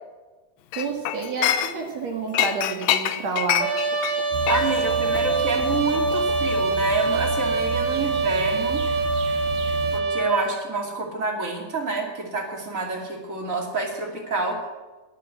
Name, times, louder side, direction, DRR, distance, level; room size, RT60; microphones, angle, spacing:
Chink clink, 0.7-2.0 2.3-6.9 7.2-7.5, left 11 dB, 80° left, 2.4 m, -27 dB
voice 1, 0.8-3.7, right 4 dB, 55° right, 2 dB, 2.4 m, -29 dB
Trumpet, 3.6-10.5, right 3 dB, 70° right, 3.7 m, -24 dB
sound 1, 4.3-10.0, right 5 dB, 90° right, 3.3 m, -33 dB
voice 2, 4.5-8.8 9.9-14.7, right 3 dB, 25° right, 1 dB, 2.2 m, -28 dB
20.5 x 8.3 x 8.2 m, 1.3 s
omnidirectional pair, 4.4 m